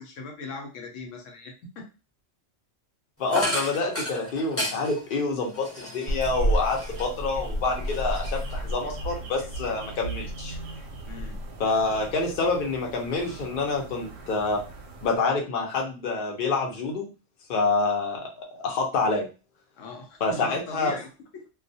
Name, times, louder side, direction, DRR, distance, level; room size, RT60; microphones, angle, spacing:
voice 1, 0.0-1.9 11.1-11.4 19.8-21.1 21.3-21.5, left 3 dB, 85° left, 2 dB, 1.0 m, -39 dB
voice 2, 3.2-10.5 11.6-14.6 15.0-17.1 17.5-19.3 20.2-21.0, left 3 dB, 50° left, 1 dB, 0.7 m, -27 dB
sound 1, 3.3-7.3 7.7-8.8, left 1 dB, 15° left, 0.5 m, -33 dB
sound 2, 6.1-15.2, right 1 dB, 85° right, 1.0 m, -33 dB
2.3 x 2.2 x 2.6 m, 0.31 s
omnidirectional pair, 1.3 m